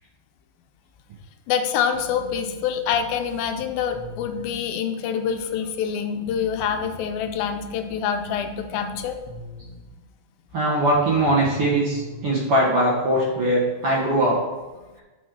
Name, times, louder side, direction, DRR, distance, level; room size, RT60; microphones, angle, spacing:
voice 1, 1.5-9.2, left 7 dB, 90° left, 6 dB, 2.4 m, -26 dB
sound 1, 1.9-4.5 6.3-9.9 10.9-12.6, left 2 dB, 65° left, 1.6 m, -42 dB
voice 2, 10.5-14.4, right 1 dB, 55° right, -5 dB, 1.8 m, -21 dB
6.1 x 5.4 x 6.6 m, 1.2 s
omnidirectional pair, 4.2 m